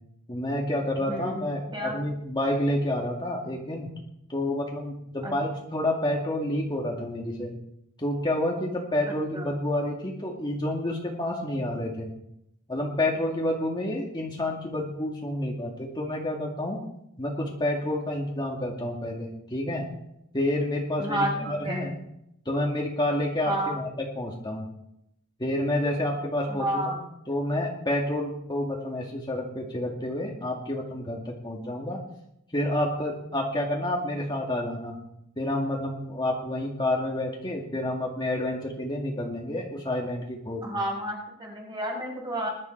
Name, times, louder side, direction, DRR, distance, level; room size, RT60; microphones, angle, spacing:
voice 1, 0.3-3.9 4.3-7.6 8.0-12.1 12.7-16.8 17.2-19.9 20.3-21.9 22.5-24.7 25.4-27.0 27.3-32.0 32.5-35.0 35.4-40.8, left 1 dB, 20° left, -1 dB, 2.3 m, -29 dB
voice 2, 1.0-1.4 1.7-2.0 5.2-5.3 9.1-9.4 21.0-21.9 23.5-23.8 26.5-27.0 40.6-42.5, right 1 dB, 20° right, -1 dB, 5.3 m, -31 dB
21.5 x 12.0 x 4.6 m, 0.80 s
head